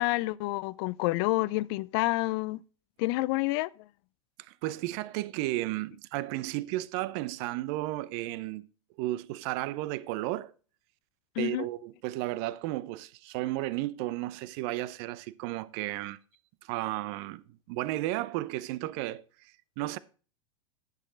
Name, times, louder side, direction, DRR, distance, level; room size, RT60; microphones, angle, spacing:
voice 1, 0.0-2.6 3.0-3.7 11.4-11.7, left 20 dB, 50° left, 0.4 m, -28 dB
voice 2, 4.5-8.6 9.0-10.5 11.4-16.2 16.6-17.4 17.7-20.0, right 17 dB, 50° right, 0.6 m, -33 dB
10.5 x 6.5 x 3.7 m
hypercardioid pair, 95°, 17 cm